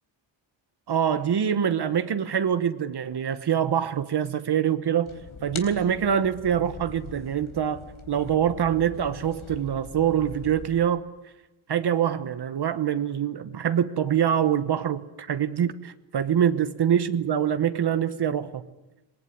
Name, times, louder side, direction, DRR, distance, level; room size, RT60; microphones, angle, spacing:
voice 1, 0.9-5.1 5.4-11.0 11.7-18.6, right 9 dB, 55° right, 1.1 m, -25 dB
sound 1, 5.1-10.8, left 6 dB, 85° left, 4.0 m, -42 dB
26.0 x 20.0 x 9.6 m
wide cardioid pair, 175°, 48 cm